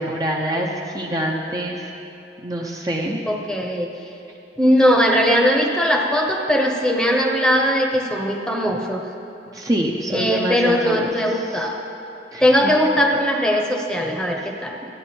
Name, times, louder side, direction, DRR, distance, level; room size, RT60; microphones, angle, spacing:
voice 1, 0.0-1.9 2.4-3.2 9.5-11.7 12.3-12.7 14.4-14.5, right 1 dB, 20° right, -1 dB, 0.7 m, -26 dB
voice 2, 3.3-3.9 4.6-9.0 10.1-11.8 12.4-14.7, equal, 5° left, 0 dB, 0.9 m, -19 dB
13.5 x 10.0 x 4.4 m, 2.8 s
head